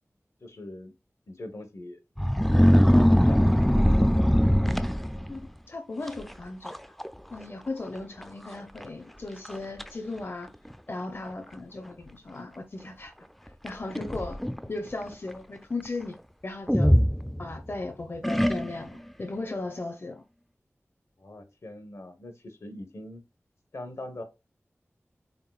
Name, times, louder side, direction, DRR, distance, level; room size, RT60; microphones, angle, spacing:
voice 1, 0.4-0.9 1.3-2.0 2.4-3.6 21.2-23.2 23.7-24.2, left 1 dB, 75° left, 1.0 m, -42 dB
sound 1, 2.2-5.4 6.1-6.3 6.6-7.1 7.3-7.4 8.2-8.3 8.8-8.9 9.4-9.9 10.7-10.8 13.7-14.7 16.7-17.7 18.2-19.0, equal, 5° left, 0.3 m, -21 dB
voice 2, 5.3-6.7 7.3-10.5 10.9-13.1 13.6-14.4 14.7-16.2 16.4-16.9 17.4-20.2, left 2 dB, 45° left, 0.6 m, -36 dB
4.0 x 3.6 x 2.3 m
wide cardioid pair, 65°, 5 cm